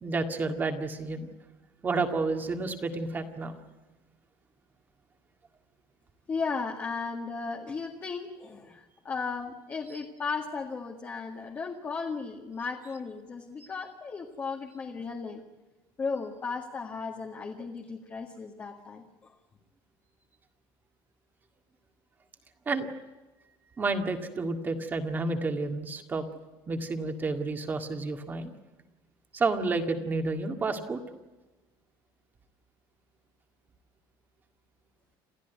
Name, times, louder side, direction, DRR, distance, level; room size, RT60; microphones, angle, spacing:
voice 1, 0.0-1.3 1.8-3.5 22.7-22.9 23.8-26.2 26.7-28.5 29.3-31.0, right 3 dB, 20° right, 5 dB, 2.0 m, -30 dB
voice 2, 6.3-15.4 16.0-19.3, left 4 dB, 20° left, 1 dB, 1.9 m, -35 dB
28.5 x 14.5 x 9.4 m, 1.1 s
cardioid pair, 170°, 10 cm